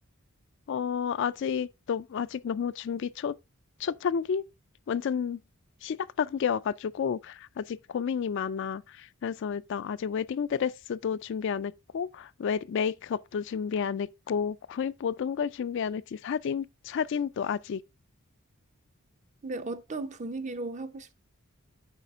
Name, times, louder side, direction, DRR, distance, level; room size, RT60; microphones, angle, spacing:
voice 1, 0.7-3.4 3.8-4.4 4.9-5.4 5.8-17.8, left 7 dB, 55° left, 0.3 m, -31 dB
voice 2, 19.4-21.1, right 2 dB, 35° right, 0.5 m, -36 dB
8.1 x 5.0 x 3.4 m
head